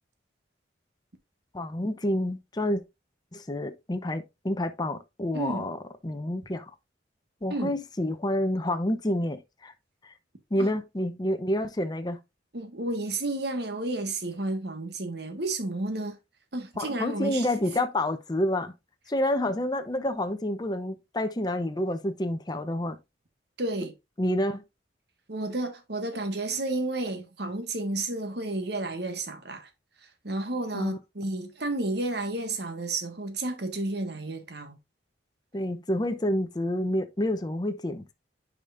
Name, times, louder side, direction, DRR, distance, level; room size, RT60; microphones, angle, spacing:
voice 1, 1.5-2.8 3.3-5.8 6.0-6.7 7.4-9.7 10.0-10.1 10.5-12.2 16.8-18.7 19.1-23.0 24.2-24.6 30.7-31.0 35.5-38.1, left 1 dB, 20° left, 0.7 m, -28 dB
voice 2, 5.3-5.6 7.5-7.7 10.6-10.7 12.5-16.2 16.5-17.5 23.6-23.9 25.3-29.7 30.2-34.8, right 2 dB, 60° right, 1.7 m, -31 dB
9.0 x 5.0 x 2.6 m
head